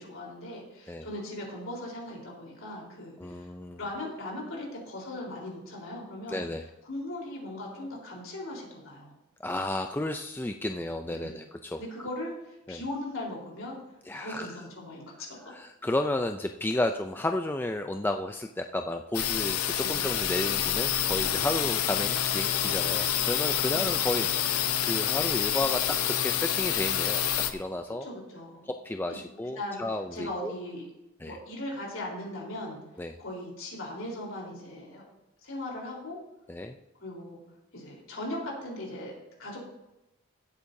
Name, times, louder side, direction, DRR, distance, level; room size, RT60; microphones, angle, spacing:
voice 1, 0.0-3.5 3.8-6.4 6.8-9.2 11.1-11.4 11.8-13.8 14.1-15.3 19.8-20.1 23.7-24.0 28.0-28.7 29.1-29.2 29.6-29.8 30.1-30.9 31.2-32.8 33.2-35.0 35.4-36.2 37.0-37.4 37.7-39.6, left 1 dB, 60° left, -3 dB, 3.8 m, -39 dB
voice 2, 3.2-3.8 6.3-6.6 9.4-11.8 12.7-12.8 14.1-14.5 15.5-27.2 27.5-28.1 28.7-30.5 31.2-31.4 33.0-33.1 36.5-36.7, left 1 dB, 10° left, 5 dB, 0.3 m, -32 dB
sound 1, 19.1-27.5, left 10 dB, 80° left, 0.8 m, -27 dB
16.5 x 8.5 x 2.7 m, 0.95 s
head